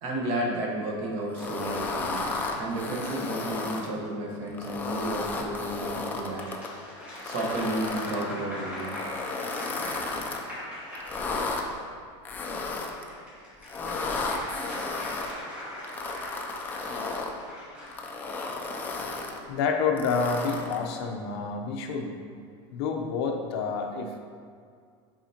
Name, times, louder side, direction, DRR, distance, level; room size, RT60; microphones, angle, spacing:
voice 1, 0.0-9.0, right 1 dB, 45° right, -2 dB, 1.1 m, -32 dB
sound 1, 1.3-3.9 4.5-6.7 7.2-8.2 8.8-10.4 11.0-11.6 12.3-13.1 13.6-15.3 15.8-17.3 17.9-19.4 20.0-20.9, left 3 dB, 10° left, 0.4 m, -33 dB
sound 2, 1.6-4.1 5.9-11.9 12.7-18.1, left 1 dB, 10° right, 1.3 m, -41 dB
voice 2, 19.5-22.2 22.7-24.2, left 5 dB, 55° left, 3 dB, 0.7 m, -28 dB
7.4 x 5.0 x 2.8 m, 2.2 s
supercardioid pair, 165°, 15 cm